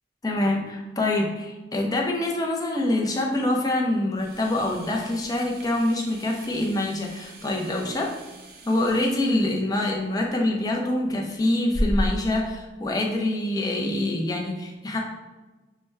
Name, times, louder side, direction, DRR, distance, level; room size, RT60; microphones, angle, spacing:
voice 1, 0.2-8.1 8.6-15.0, left 1 dB, 20° left, 0 dB, 0.6 m, -25 dB
sound 1, 4.1-12.3, equal, 55° right, 0.7 m, -35 dB
5.9 x 2.2 x 3.2 m, 1.2 s
head